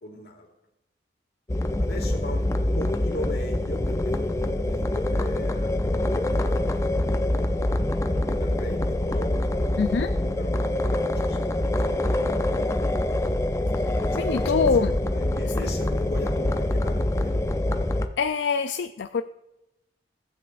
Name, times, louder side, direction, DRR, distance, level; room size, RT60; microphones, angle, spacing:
voice 1, 0.0-0.5 1.8-2.5 2.7-7.7 8.3-9.8 10.4-10.6 10.9-11.5 11.9-12.0 13.9-17.3, left 1 dB, 60° left, 2 dB, 2.0 m, -39 dB
sound 1, 1.5-18.1, left 1 dB, 15° left, 0.4 m, -25 dB
voice 2, 9.8-10.2 13.8-14.9 15.5-15.6 18.2-19.2, left 5 dB, 80° left, 9 dB, 0.4 m, -25 dB
16.0 x 8.4 x 2.5 m, 0.93 s
head